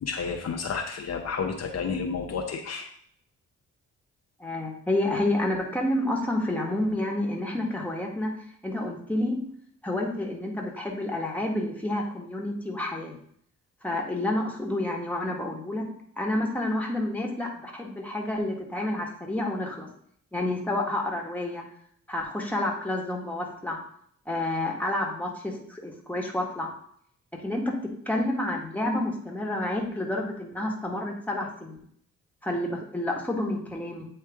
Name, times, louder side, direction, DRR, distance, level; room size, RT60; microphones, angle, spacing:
voice 1, 0.0-2.9, left 5 dB, 55° left, 3 dB, 0.8 m, -31 dB
voice 2, 4.4-8.3 8.6-9.4 9.8-13.2 13.8-15.9 16.2-19.9 20.3-21.6 22.1-23.8 24.3-26.7 27.3-31.8 32.4-34.1, left 1 dB, 5° left, 0 dB, 1.7 m, -29 dB
8.6 x 3.2 x 3.7 m, 0.65 s
supercardioid pair, 60°, 31 cm